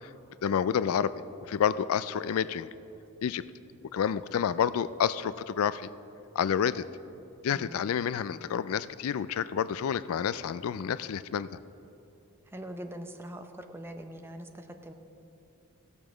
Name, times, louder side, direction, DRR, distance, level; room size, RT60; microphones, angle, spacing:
voice 1, 0.4-1.1 1.5-2.7 3.2-3.4 3.9-5.9 6.4-6.8 7.4-11.5, left 8 dB, 80° left, 16 dB, 0.3 m, -29 dB
voice 2, 7.5-7.8 12.5-14.9, right 1 dB, 10° right, 6 dB, 0.6 m, -42 dB
15.0 x 7.0 x 6.2 m, 2.8 s
head